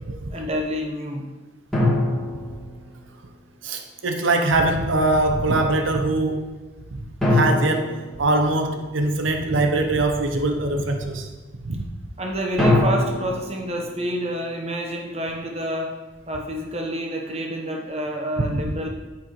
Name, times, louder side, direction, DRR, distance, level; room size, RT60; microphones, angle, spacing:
voice 1, 0.3-1.3 12.2-16.0 16.3-18.9, equal, 35° right, 1 dB, 1.1 m, -28 dB
sound 1, 1.7-3.3 7.2-9.1 12.6-14.8, left 1 dB, ahead, 3.0 m, -24 dB
voice 2, 3.6-6.4 7.3-11.3 11.6-11.8 18.4-18.7, right 2 dB, 85° right, 5 dB, 0.8 m, -22 dB
8.8 x 8.6 x 3.2 m, 1.2 s
head